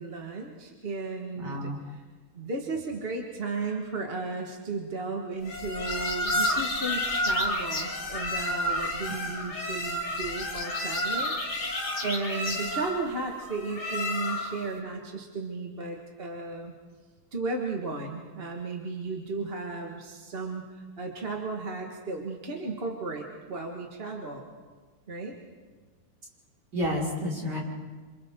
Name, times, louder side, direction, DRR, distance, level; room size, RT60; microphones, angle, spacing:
voice 1, 0.0-2.0 2.3-16.7 17.3-24.5 25.1-25.3, right 3 dB, 30° right, 1 dB, 1.8 m, -35 dB
voice 2, 1.4-1.8 26.7-27.6, left 1 dB, 50° right, -5 dB, 5.7 m, -30 dB
sound 1, 5.4-14.7, left 1 dB, 50° left, 3.0 m, -30 dB
28.5 x 27.0 x 3.8 m, 1.4 s
omnidirectional pair, 2.3 m